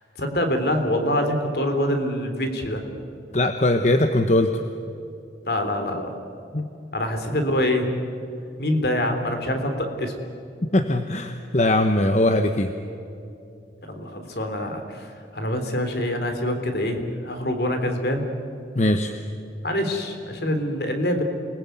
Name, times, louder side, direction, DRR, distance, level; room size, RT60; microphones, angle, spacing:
voice 1, 0.2-2.8 5.5-6.1 6.9-7.9 8.6-10.1 13.8-18.2 19.6-21.2, left 1 dB, 60° left, 6 dB, 3.6 m, -25 dB
voice 2, 3.3-4.5 6.5-6.7 10.7-12.7 18.7-19.1, left 1 dB, 40° left, 7 dB, 1.0 m, -20 dB
28.0 x 20.5 x 9.4 m, 2.7 s
head